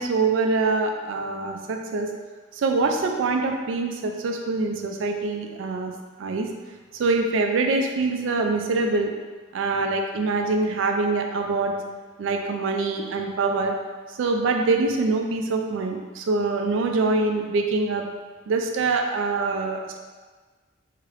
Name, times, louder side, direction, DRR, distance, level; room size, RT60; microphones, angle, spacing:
voice 1, 0.0-2.1 2.5-5.9 6.2-6.5 6.9-9.1 9.5-11.7 12.2-13.7 14.2-18.1 18.5-20.0, right 3 dB, 70° right, 3 dB, 0.3 m, -24 dB
2.8 x 2.5 x 3.2 m, 1.4 s
head